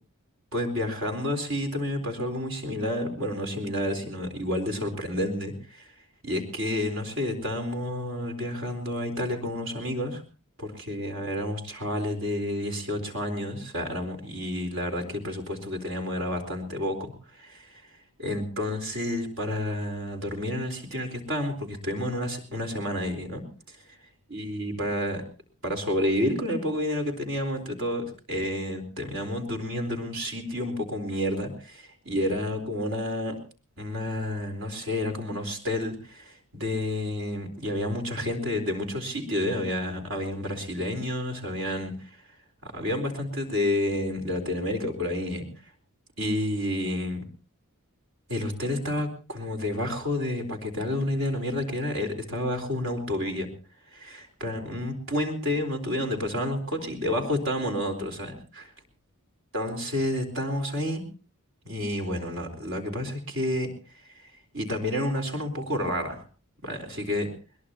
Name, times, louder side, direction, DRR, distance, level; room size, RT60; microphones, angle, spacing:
voice 1, 0.5-5.9 6.2-10.2 10.6-17.9 18.2-23.8 24.3-25.2 25.6-33.4 33.8-42.1 42.6-45.5 46.2-47.2 48.3-53.5 53.9-58.7 59.5-61.0 61.6-63.7 64.5-66.2 66.6-67.3, left 1 dB, 60° right, 4 dB, 4.2 m, -30 dB
21.5 x 21.5 x 2.9 m, 0.35 s
head